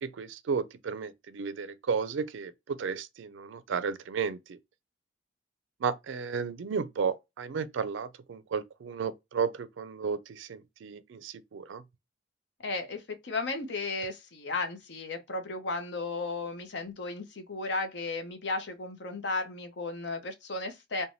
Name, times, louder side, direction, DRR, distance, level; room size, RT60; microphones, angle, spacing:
voice 1, 0.0-4.6 5.8-11.8, right 6 dB, 70° right, 0.4 m, -33 dB
voice 2, 12.6-21.0, left 3 dB, 60° left, 0.6 m, -34 dB
3.1 x 2.2 x 2.5 m
head